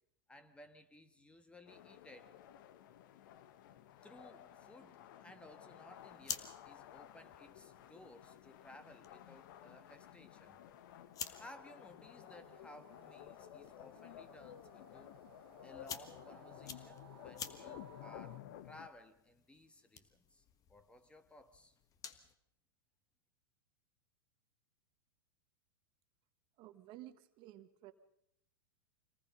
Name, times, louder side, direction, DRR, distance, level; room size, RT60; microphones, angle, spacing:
voice 1, 0.3-2.4 4.0-10.6 11.3-15.2 15.6-21.7, left 1 dB, 10° left, 10 dB, 1.4 m, -58 dB
sound 1, 1.7-18.9, left 11 dB, 60° left, 1.2 m, -55 dB
sound 2, 5.9-22.4, left 7 dB, 30° left, 1.5 m, -53 dB
sound 3, 12.2-18.4, right 9 dB, 85° right, 0.8 m, -63 dB
voice 2, 26.6-27.9, right 14 dB, 45° right, 11 dB, 1.3 m, -54 dB
26.0 x 19.0 x 5.4 m, 0.77 s
hypercardioid pair, 110°, 12 cm